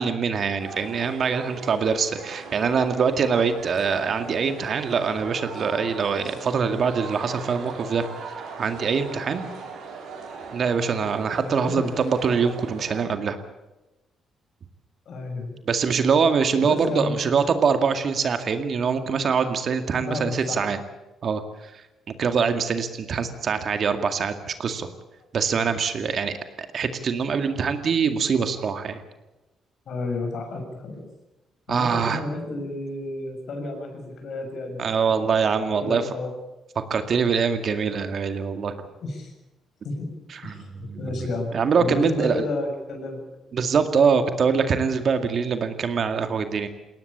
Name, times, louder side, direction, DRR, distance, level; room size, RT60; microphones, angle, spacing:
voice 1, 0.0-8.0 8.6-9.5 10.5-13.4 15.7-20.8 21.2-21.4 22.2-24.9 25.3-29.0 31.7-32.2 34.8-36.0 36.9-38.7 40.3-41.2 41.5-42.4 43.5-46.7, right 6 dB, 55° right, 8 dB, 2.1 m, -24 dB
sound 1, 0.6-13.0, right 4 dB, 80° right, 5.7 m, -39 dB
voice 2, 11.4-11.9 15.1-15.6 16.6-17.3 19.9-20.6 29.9-31.0 31.7-35.3 35.6-36.3 39.0-39.3 39.8-40.1 40.4-43.2, left 2 dB, 65° left, 4 dB, 6.9 m, -31 dB
21.0 x 18.0 x 8.7 m, 1.0 s
cardioid pair, 90°, 0 cm